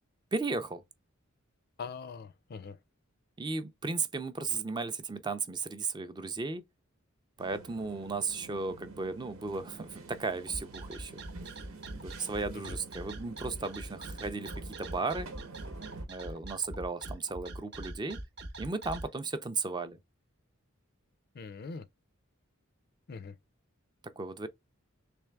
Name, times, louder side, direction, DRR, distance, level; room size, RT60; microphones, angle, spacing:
voice 1, 0.3-0.8 3.4-6.6 7.4-11.2 11.9-15.3 16.1-18.2 18.6-20.0 24.2-24.5, right 4 dB, 20° right, 0.4 m, -35 dB
voice 2, 1.8-2.8 21.4-21.8 23.1-23.3, left 5 dB, 50° left, 0.4 m, -42 dB
sound 1, 7.4-16.0, right 3 dB, 90° right, 1.1 m, -49 dB
sound 2, 10.5-19.1, right 1 dB, 55° right, 0.9 m, -42 dB
3.4 x 3.2 x 3.3 m
head